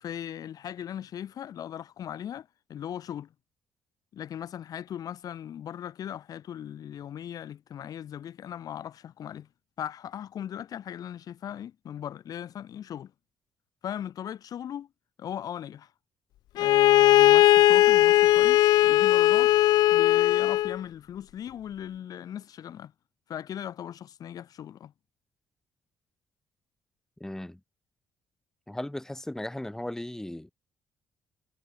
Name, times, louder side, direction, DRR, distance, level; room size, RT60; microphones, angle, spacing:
voice 1, 0.0-3.3 4.1-9.5 9.8-13.1 13.8-14.9 15.2-15.9 16.5-19.5 19.9-22.9 23.3-24.9, left 10 dB, 60° left, 1.0 m, -38 dB
Bowed string instrument, 16.6-20.8, left 15 dB, 80° left, 0.4 m, -19 dB
voice 2, 27.2-27.6 28.7-30.5, left 1 dB, 5° left, 1.7 m, -36 dB
cardioid pair, 90°, 7 cm